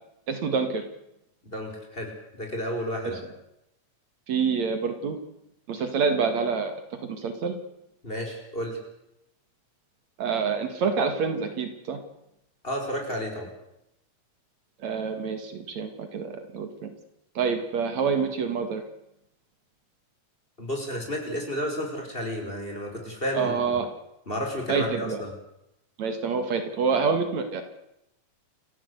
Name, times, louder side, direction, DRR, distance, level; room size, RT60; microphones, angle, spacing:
voice 1, 0.3-0.9 3.0-3.2 4.3-5.2 5.7-6.7 7.1-7.6 10.2-12.0 14.8-16.9 17.4-18.8 23.3-23.9 24.7-25.2 26.0-27.6, right 5 dB, 65° right, 7 dB, 3.2 m, -27 dB
voice 2, 1.4-2.1 2.4-3.2 8.0-8.8 12.6-13.5 20.6-23.8 24.3-25.3, equal, 15° left, 2 dB, 5.4 m, -31 dB
29.0 x 15.0 x 8.2 m, 0.85 s
omnidirectional pair, 3.4 m